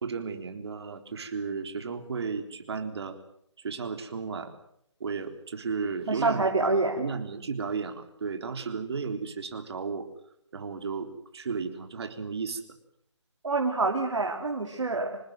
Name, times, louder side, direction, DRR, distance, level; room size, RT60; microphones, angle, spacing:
voice 1, 0.0-3.2 3.6-4.5 5.0-6.7 7.0-10.1 10.5-12.6, right 5 dB, 60° right, 7 dB, 3.8 m, -34 dB
voice 2, 6.1-7.0 13.4-15.2, right 3 dB, 85° right, 2 dB, 3.3 m, -26 dB
26.0 x 20.0 x 7.8 m, 0.73 s
hypercardioid pair, 160°, 15 cm